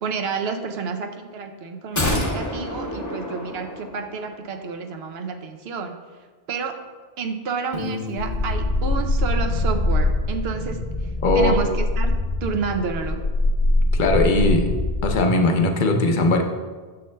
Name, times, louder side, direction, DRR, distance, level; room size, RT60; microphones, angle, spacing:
voice 1, 0.0-6.0 6.5-6.8 7.2-10.8 11.3-12.1 12.4-13.2, right 5 dB, 75° right, 5 dB, 0.8 m, -30 dB
sound 1, 2.0-4.3 4.6-4.7, left 1 dB, 20° left, 0.6 m, -27 dB
Piano, 7.7-10.5, left 3 dB, 35° right, 0.9 m, -36 dB
sound 2, 8.2-15.2, left 2 dB, 85° left, 1.6 m, -23 dB
voice 2, 11.2-11.6 13.9-14.7 15.0-16.4, left 2 dB, 55° left, 4 dB, 0.8 m, -19 dB
9.0 x 6.5 x 2.2 m, 1.4 s
omnidirectional pair, 1.1 m